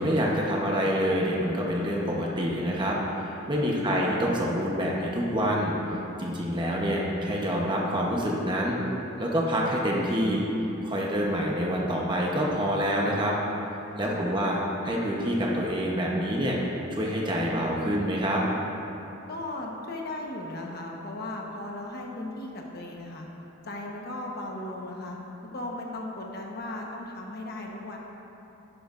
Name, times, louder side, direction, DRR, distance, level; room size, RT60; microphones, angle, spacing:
voice 1, 0.0-8.8 9.2-10.4 10.8-13.3 14.0-16.6 16.9-18.4, equal, 20° right, -3 dB, 1.0 m, -27 dB
voice 2, 14.0-14.5 19.3-23.3 23.6-25.2 25.5-28.0, left 1 dB, 50° left, -1 dB, 1.2 m, -37 dB
11.0 x 11.0 x 2.6 m, 2.9 s
head